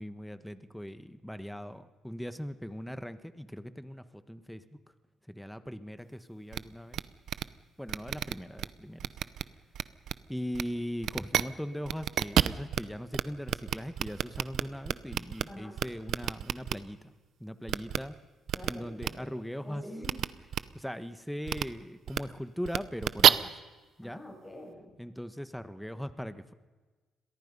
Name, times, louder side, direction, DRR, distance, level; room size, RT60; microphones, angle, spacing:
voice 1, 0.0-4.6 5.3-7.0 7.8-9.1 10.3-17.1 17.4-18.1 18.7-19.8 20.7-23.5 24.0-24.2 25.0-26.5, equal, ahead, 11 dB, 1.4 m, -40 dB
sound 1, 6.5-6.6 6.9-7.0 7.3-7.4 7.9-8.7 9.0-9.4 9.7-10.1 10.5-10.6 11.0-11.4 11.9-12.8 13.1-13.2 13.5-15.4 15.8-16.7 17.7-18.0 18.5-18.7 19.0-19.1 20.0-20.3 20.5-20.6 21.5-21.6 22.1-22.2 22.7-23.3, right 10 dB, 70° right, 0.8 m, -27 dB
voice 2, 18.5-19.0 19.6-20.3 24.0-25.0, left 1 dB, 20° left, 1 dB, 7.8 m, -46 dB
29.5 x 22.5 x 5.5 m, 1.3 s
cardioid pair, 90°, 0 cm